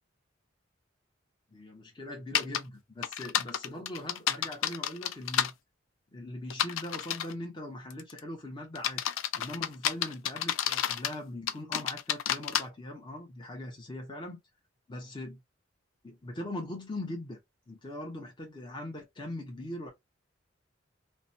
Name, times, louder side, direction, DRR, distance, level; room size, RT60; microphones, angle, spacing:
voice 1, 1.5-5.5 6.1-9.0 9.3-14.4 14.9-15.4 16.0-17.4 17.7-19.9, left 1 dB, 25° left, 0.8 m, -41 dB
sound 1, 2.3-2.6 3.0-5.5 6.5-7.3 7.9-8.2 8.7-11.2 11.5-12.6, left 10 dB, 90° left, 0.3 m, -30 dB
2.9 x 2.2 x 2.6 m
head